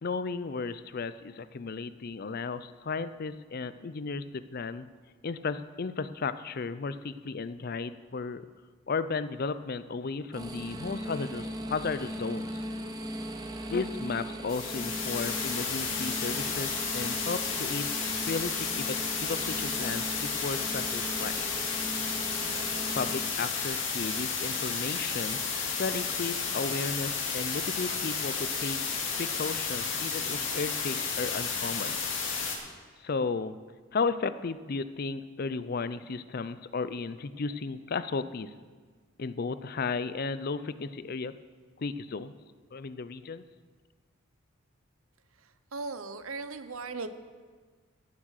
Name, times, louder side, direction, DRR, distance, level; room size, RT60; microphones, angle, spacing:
voice 1, 0.0-4.9 5.2-8.5 8.9-12.6 13.7-21.3 22.9-25.4 25.8-28.8 29.2-32.0 33.0-33.6 33.9-38.5 39.2-41.3 41.8-42.4 42.7-43.4, left 4 dB, 45° left, 13 dB, 0.5 m, -34 dB
sound 1, 10.3-23.1, right 1 dB, 20° right, 0.9 m, -39 dB
sound 2, 14.5-32.6, left 5 dB, 60° left, 2.2 m, -32 dB
voice 2, 45.4-47.1, right 4 dB, 80° right, 11 dB, 0.8 m, -38 dB
15.5 x 7.5 x 6.6 m, 1.5 s
head